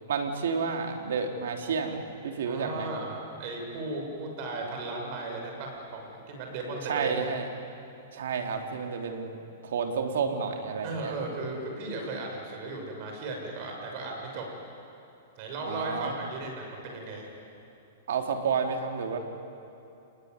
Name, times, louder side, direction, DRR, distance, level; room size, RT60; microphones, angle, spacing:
voice 1, 0.1-2.9 6.8-7.5 8.1-9.4 9.6-11.1 15.6-16.1 18.1-19.2, right 5 dB, 75° right, 4 dB, 3.4 m, -30 dB
voice 2, 2.5-7.1 10.8-14.5 15.4-17.3, right 2 dB, 45° right, 1 dB, 7.0 m, -36 dB
29.0 x 20.5 x 9.8 m, 2.7 s
hypercardioid pair, 150°, 0 cm